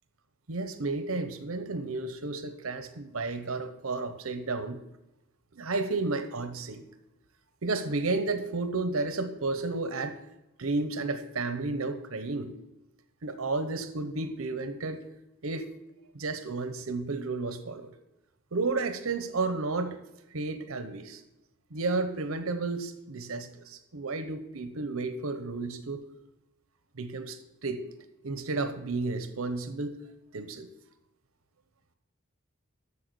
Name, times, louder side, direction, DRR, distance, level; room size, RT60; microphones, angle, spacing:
voice 1, 0.5-4.8 5.5-6.9 7.6-10.2 10.6-12.5 13.2-15.0 15.4-15.7 16.1-17.9 18.5-20.0 20.3-21.2 21.7-26.0 27.0-27.8 28.2-29.9 30.3-30.7, right 3 dB, 85° right, 10 dB, 0.9 m, -32 dB
8.5 x 6.8 x 6.8 m, 0.96 s
head